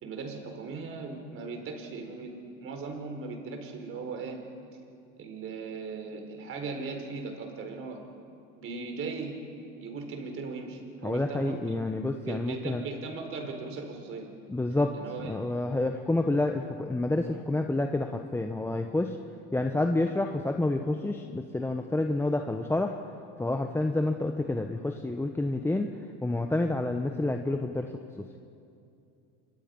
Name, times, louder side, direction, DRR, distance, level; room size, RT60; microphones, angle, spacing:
voice 1, 0.0-4.4 5.2-8.0 8.6-9.3 9.8-11.6 12.3-14.3 14.9-15.3, right 4 dB, 45° right, 4 dB, 4.6 m, -38 dB
voice 2, 11.0-12.8 14.5-14.9 15.3-19.2 19.5-22.9 23.4-25.9 26.2-28.2, left 2 dB, 10° left, 4 dB, 1.1 m, -29 dB
27.5 x 24.0 x 5.5 m, 2.6 s
supercardioid pair, 110°, 30 cm